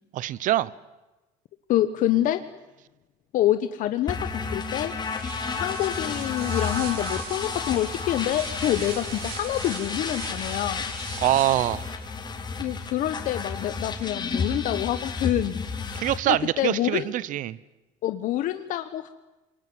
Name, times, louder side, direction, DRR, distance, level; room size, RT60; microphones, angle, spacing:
voice 1, 0.1-0.7 11.2-11.9 15.9-17.6, right 14 dB, 60° right, 21 dB, 1.0 m, -24 dB
voice 2, 1.7-2.4 3.3-4.2 4.5-4.9 5.5-10.9 12.6-15.7 16.3-17.1 18.0-19.1, left 13 dB, 60° left, 10 dB, 1.2 m, -26 dB
sound 1, 4.1-16.2, left 4 dB, 30° left, 4.1 m, -32 dB
sound 2, 5.0-11.9, right 10 dB, 80° right, 3.1 m, -41 dB
26.0 x 22.5 x 9.7 m, 1.1 s
cardioid pair, 115°, 15 cm